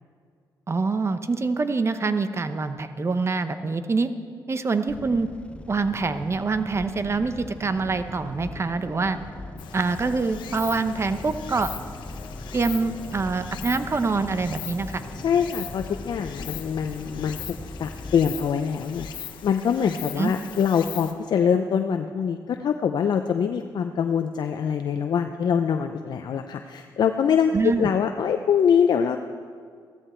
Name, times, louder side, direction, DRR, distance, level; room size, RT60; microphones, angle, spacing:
voice 1, 0.7-4.1 4.5-5.3 5.7-9.2 9.7-11.7 12.5-15.0 20.2-20.3 27.5-27.9, right 4 dB, 35° right, 10 dB, 0.8 m, -25 dB
sound 1, 4.9-18.5, left 2 dB, 15° left, 0.6 m, -41 dB
sound 2, 6.7-19.1, left 3 dB, 40° left, 2.3 m, -44 dB
Stream, 9.6-21.1, left 9 dB, 90° left, 0.9 m, -41 dB
voice 2, 15.1-17.4 17.8-29.2, left 7 dB, 65° left, 6 dB, 0.6 m, -24 dB
15.5 x 13.5 x 4.5 m, 2.1 s
cardioid pair, 80°, 8 cm